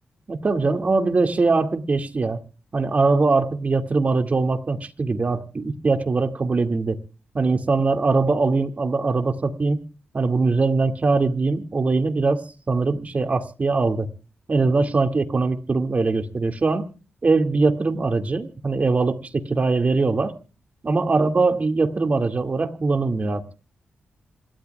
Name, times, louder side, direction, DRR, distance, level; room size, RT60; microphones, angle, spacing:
voice 1, 0.3-2.4 2.7-7.0 7.3-9.8 10.1-14.1 14.5-16.9 17.2-20.3 20.8-23.5, right 3 dB, 40° right, 6 dB, 2.1 m, -22 dB
27.0 x 13.0 x 2.3 m, 0.36 s
cardioid pair, 70°, 4 cm